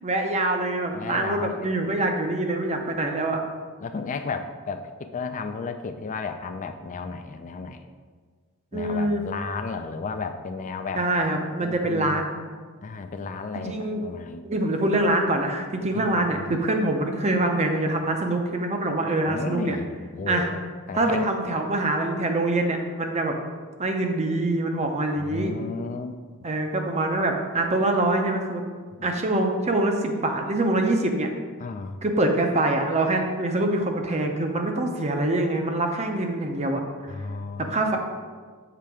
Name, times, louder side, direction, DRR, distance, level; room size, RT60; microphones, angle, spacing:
voice 1, 0.0-3.4 8.7-9.2 11.0-12.5 13.5-14.0 14.4-19.8 20.3-20.5 20.9-23.3 23.8-25.5 26.4-28.6 29.0-31.3 32.0-36.8 37.6-38.0, right 2 dB, 30° right, 4 dB, 0.6 m, -24 dB
voice 2, 0.9-1.5 2.7-3.0 3.8-7.8 8.7-11.0 11.6-12.2 12.8-14.4 15.9-16.6 19.2-20.6 20.9-21.3 25.2-26.1 29.0-29.1 31.6-32.0 37.1-37.9, left 4 dB, 35° left, 8 dB, 0.4 m, -34 dB
6.9 x 3.4 x 4.8 m, 1.5 s
head